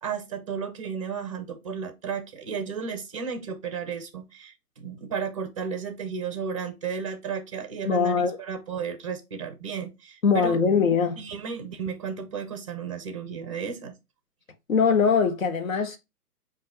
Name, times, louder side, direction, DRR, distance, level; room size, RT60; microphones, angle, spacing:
voice 1, 0.0-10.6 11.2-14.0, right 6 dB, 20° right, 0.5 m, -33 dB
voice 2, 7.8-8.4 10.2-11.2 14.7-16.0, left 5 dB, 60° left, 1.1 m, -22 dB
7.3 x 2.7 x 2.7 m
figure-of-eight pair, 135°, 46 cm